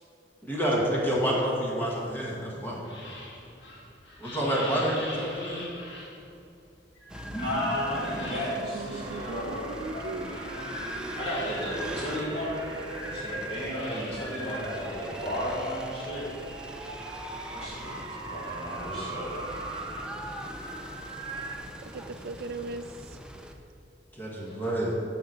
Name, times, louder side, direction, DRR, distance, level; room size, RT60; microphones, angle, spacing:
voice 1, 0.4-2.8 4.2-5.6 24.1-24.9, equal, 10° left, -5 dB, 1.4 m, -28 dB
sound 1, 2.4-8.9 9.3-15.1, left 1 dB, 75° left, 1.8 m, -41 dB
sound 2, 7.1-23.5, equal, 5° right, 0.5 m, -43 dB
voice 2, 7.3-10.6 11.1-12.6 13.1-16.3 17.5-17.9 18.3-19.4 24.4-24.6, equal, 35° left, -7 dB, 2.1 m, -34 dB
sound 3, 8.2-21.6, right 2 dB, 25° right, 1.0 m, -40 dB
voice 3, 8.6-10.3 21.8-23.2, right 3 dB, 60° right, 7 dB, 0.4 m, -39 dB
6.9 x 5.9 x 6.6 m, 2.5 s
head